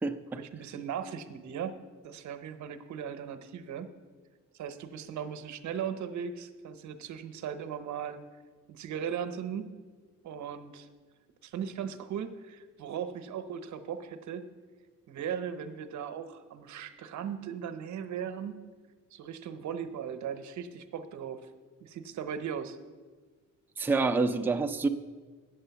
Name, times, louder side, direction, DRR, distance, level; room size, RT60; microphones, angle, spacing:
voice 1, 0.3-1.8 2.0-3.9 4.5-8.2 8.7-9.7 10.2-10.9 11.4-14.5 15.1-18.6 19.1-21.5 21.8-22.8, right 8 dB, 70° right, 9 dB, 0.9 m, -38 dB
voice 2, 23.8-24.9, right 3 dB, 5° right, 6 dB, 0.5 m, -27 dB
8.7 x 8.0 x 6.9 m, 1.4 s
cardioid pair, 90°, 30 cm